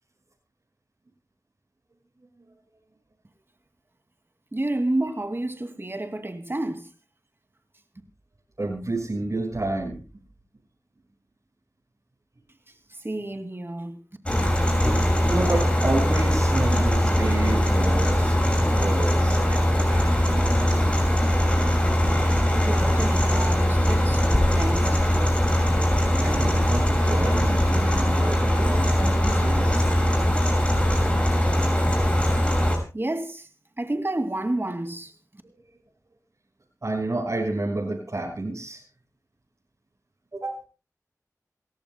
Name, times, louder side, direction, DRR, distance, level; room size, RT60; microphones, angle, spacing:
voice 1, 4.5-6.9 13.0-14.0 22.7-25.0 32.9-33.5 33.8-35.1, right 1 dB, 40° right, 2.4 m, -30 dB
voice 2, 8.6-10.0 15.3-20.5 26.2-29.8 35.5-35.6 36.8-38.8 40.3-40.6, right 2 dB, 60° right, 5.9 m, -30 dB
sound 1, 14.3-32.8, equal, 20° left, 6.4 m, -21 dB
28.5 x 14.0 x 2.3 m
wide cardioid pair, 65°, 6 cm